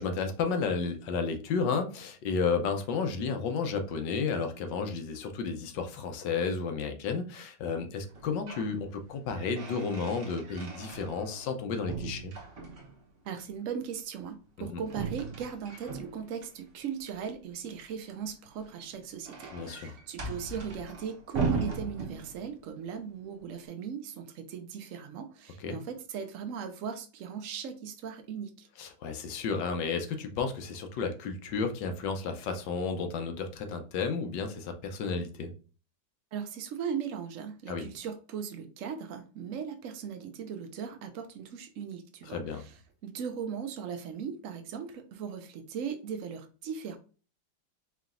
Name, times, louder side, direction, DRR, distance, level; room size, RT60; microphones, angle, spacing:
voice 1, 0.0-12.3 14.6-14.8 19.5-20.0 25.6-25.8 28.8-35.5 37.7-37.9 42.3-42.6, left 5 dB, 75° left, 6 dB, 1.3 m, -32 dB
sound 1, 8.1-8.7 9.1-11.6 11.9-13.1 14.9-16.5 18.5-22.7, right 4 dB, 50° right, 1.1 m, -38 dB
voice 2, 13.2-28.7 36.3-47.0, right 7 dB, 85° right, 7 dB, 0.7 m, -38 dB
4.8 x 3.1 x 2.5 m, 0.36 s
omnidirectional pair, 2.1 m